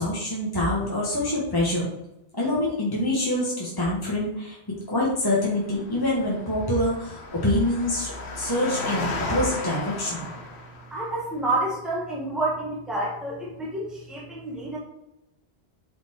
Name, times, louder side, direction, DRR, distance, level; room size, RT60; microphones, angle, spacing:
voice 1, 0.0-1.9 2.3-4.6 4.9-10.3, left 1 dB, 20° left, -4 dB, 1.4 m, -25 dB
Engine, 5.4-11.1, left 3 dB, 90° left, 1.4 m, -34 dB
voice 2, 10.9-14.8, right 2 dB, ahead, -4 dB, 1.3 m, -29 dB
7.8 x 4.3 x 4.4 m, 0.91 s
omnidirectional pair, 1.1 m